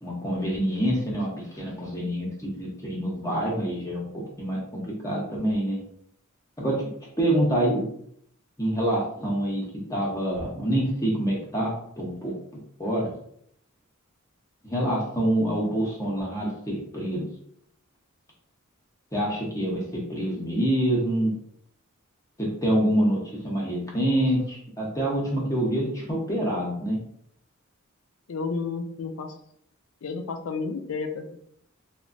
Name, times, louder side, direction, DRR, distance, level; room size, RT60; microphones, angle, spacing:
voice 1, 0.0-5.8 6.6-6.8 7.2-7.8 8.6-12.3 12.8-13.1 14.6-17.2 19.1-21.3 22.4-27.0, right 1 dB, 15° left, -4 dB, 0.6 m, -26 dB
voice 2, 28.3-29.4 30.0-31.4, left 4 dB, 85° left, 6 dB, 0.4 m, -31 dB
3.1 x 2.1 x 2.5 m, 0.69 s
head